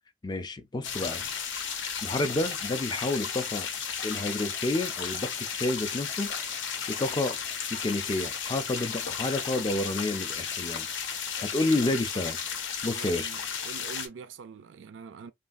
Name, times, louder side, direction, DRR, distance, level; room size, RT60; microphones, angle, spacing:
voice 1, 0.2-1.3 2.0-3.7 4.0-6.3 6.9-7.4 7.7-10.9 11.4-12.4 12.8-13.3, left 2 dB, 20° left, 0.4 m, -30 dB
sound 1, 0.8-14.1, left 7 dB, 75° left, 0.7 m, -34 dB
voice 2, 12.9-15.3, right 5 dB, 70° right, 0.4 m, -45 dB
3.2 x 2.3 x 2.5 m
head